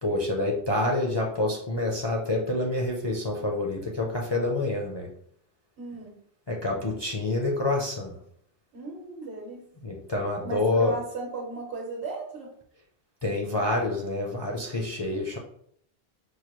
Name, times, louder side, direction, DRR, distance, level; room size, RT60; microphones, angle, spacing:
voice 1, 0.0-5.1 6.5-8.1 9.8-10.9 13.2-15.4, left 2 dB, 40° left, -1 dB, 0.4 m, -27 dB
voice 2, 5.8-6.1 8.7-9.6 10.4-12.5, right 3 dB, 65° right, -3 dB, 1.1 m, -35 dB
4.6 x 2.2 x 3.0 m, 0.66 s
omnidirectional pair, 1.1 m